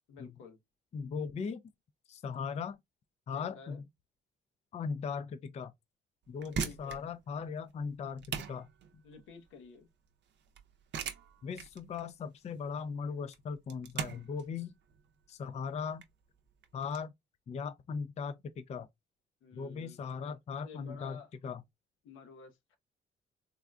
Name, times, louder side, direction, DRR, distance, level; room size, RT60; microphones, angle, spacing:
voice 1, 0.1-0.6 3.3-3.8 6.6-7.0 9.0-9.9 19.4-20.0 20.2-20.3 20.6-21.3 22.0-22.8, left 5 dB, 85° left, 0.8 m, -52 dB
voice 2, 0.9-1.6 2.1-2.8 3.3-3.8 4.7-5.7 6.3-8.7 8.9-9.0 11.4-14.7 15.3-16.0 16.7-17.1 17.5-18.9 19.5-21.6, left 6 dB, 35° left, 0.4 m, -38 dB
sound 1, 6.2-17.0, right 7 dB, 65° right, 0.6 m, -42 dB
3.6 x 2.2 x 2.3 m
cardioid pair, 90°, 20 cm